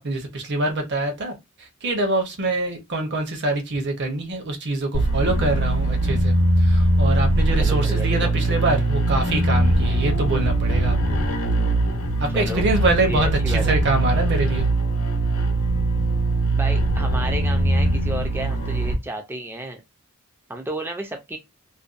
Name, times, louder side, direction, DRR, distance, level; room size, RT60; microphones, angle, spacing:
voice 1, 0.0-11.2 12.2-14.7, right 2 dB, 55° right, 0.7 m, -25 dB
sound 1, 4.9-19.0, right 2 dB, 75° left, 0.7 m, -21 dB
voice 2, 7.6-8.3 9.9-10.0 12.3-12.7 13.1-13.8 16.5-19.8 20.5-21.4, right 2 dB, 10° right, 0.4 m, -32 dB
2.6 x 2.1 x 2.4 m
head